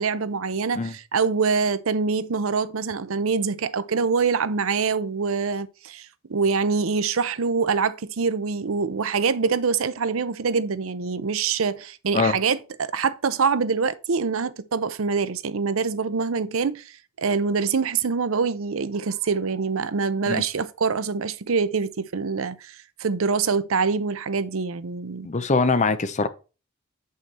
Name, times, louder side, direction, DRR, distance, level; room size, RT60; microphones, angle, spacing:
voice 1, 0.0-16.8 17.2-25.3, right 5 dB, 70° right, 0.6 m, -25 dB
voice 2, 25.2-26.3, left 3 dB, 35° left, 0.7 m, -22 dB
7.7 x 5.6 x 4.2 m
head